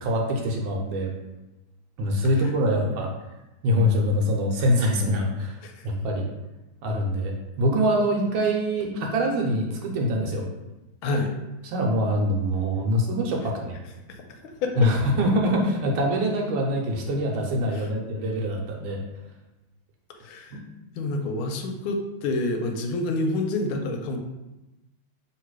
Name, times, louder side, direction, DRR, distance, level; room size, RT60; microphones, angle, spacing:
voice 1, 0.0-1.1 2.0-3.1 3.6-5.6 5.8-6.2 6.8-10.4 11.6-13.7 14.8-19.0 20.5-20.6, equal, 75° right, 0 dB, 1.5 m, -24 dB
voice 2, 2.4-2.9 5.6-5.9 11.0-11.3 14.1-14.9 17.7-17.9 20.2-20.6 20.9-24.2, left 2 dB, 85° left, 4 dB, 1.4 m, -29 dB
3.2 x 3.0 x 4.7 m, 1.0 s
omnidirectional pair, 2.3 m